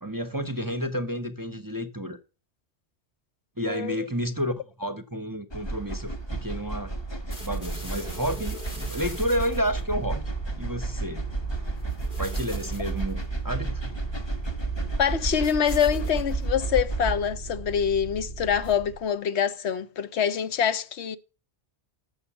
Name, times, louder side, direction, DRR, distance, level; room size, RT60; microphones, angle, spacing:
voice 1, 0.0-2.2 3.6-6.9 7.4-10.2 10.6-11.3 12.2-13.9, equal, 25° right, 0.6 m, -30 dB
sound 1, 5.5-17.1, right 3 dB, 25° left, 1.0 m, -32 dB
sound 2, 7.3-19.1, right 2 dB, 40° left, 3.2 m, -39 dB
voice 2, 15.0-21.2, left 8 dB, 80° left, 1.0 m, -25 dB
8.2 x 6.6 x 7.0 m
omnidirectional pair, 1.1 m